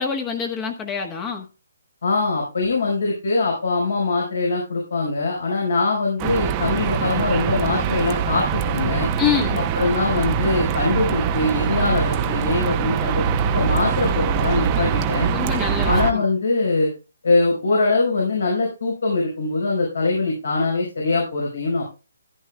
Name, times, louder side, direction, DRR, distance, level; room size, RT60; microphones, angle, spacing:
voice 1, 0.0-1.5 9.2-9.6 15.3-16.2, left 7 dB, 20° left, 3 dB, 1.4 m, -25 dB
voice 2, 2.0-9.1 9.7-15.3 15.8-16.9 17.2-21.8, left 3 dB, 70° left, -1 dB, 4.9 m, -22 dB
sound 1, 6.2-16.1, right 7 dB, 25° right, 0.9 m, -23 dB
14.5 x 10.5 x 2.3 m, 0.30 s
hypercardioid pair, 145°, 0 cm